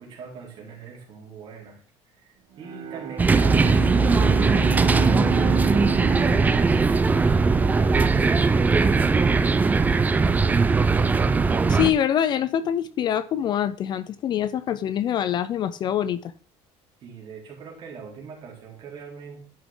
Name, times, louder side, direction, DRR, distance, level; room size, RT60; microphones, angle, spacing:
voice 1, 0.0-1.8 2.1-11.1 17.0-19.4, right 5 dB, 40° right, -2 dB, 3.4 m, -42 dB
Bowed string instrument, 2.6-8.1, right 7 dB, 65° right, 2.0 m, -32 dB
sound 1, 3.2-11.9, right 4 dB, 15° right, 0.5 m, -19 dB
voice 2, 11.7-16.3, left 10 dB, 40° left, 15 dB, 0.4 m, -25 dB
11.0 x 6.1 x 3.7 m, 0.43 s
cardioid pair, 165°, 12 cm